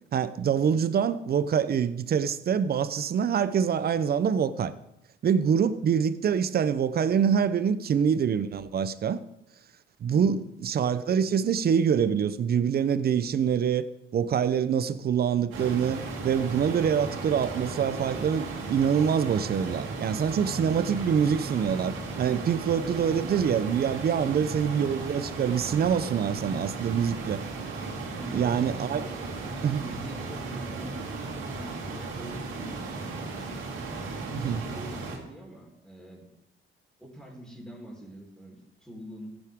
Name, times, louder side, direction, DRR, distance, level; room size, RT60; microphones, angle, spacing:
voice 1, 0.1-4.7 5.2-9.2 10.0-13.8 14.1-27.4 28.3-29.0 29.6-29.8 34.3-34.6, right 7 dB, 50° right, 0.8 m, -25 dB
voice 2, 7.7-8.0 10.1-10.4 24.1-24.3 27.1-27.3 28.1-29.3 29.8-31.0 31.3-33.6 34.2-36.3 37.0-39.3, equal, 5° left, 4.3 m, -44 dB
sound 1, 15.5-35.2, right 3 dB, 85° right, 2.8 m, -36 dB
15.0 x 9.0 x 3.7 m
cardioid pair, 90°, 20 cm